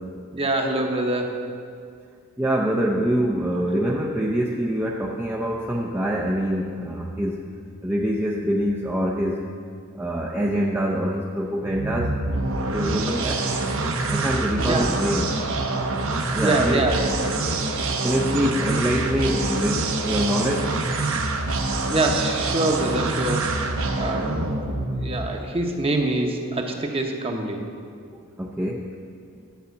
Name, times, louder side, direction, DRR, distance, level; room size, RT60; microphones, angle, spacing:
voice 1, 0.3-1.5 14.7-14.9 16.4-17.3 21.9-24.5 25.0-27.6, right 2 dB, 25° right, 2 dB, 1.0 m, -25 dB
voice 2, 2.4-7.4 7.8-9.4 10.0-12.1 12.7-13.4 14.1-15.4 16.3-16.8 18.0-20.8 28.4-28.9, equal, 10° right, -2 dB, 0.5 m, -25 dB
sound 1, 11.6-25.4, right 2 dB, 65° right, 1.0 m, -26 dB
10.5 x 5.6 x 8.2 m, 2.3 s
head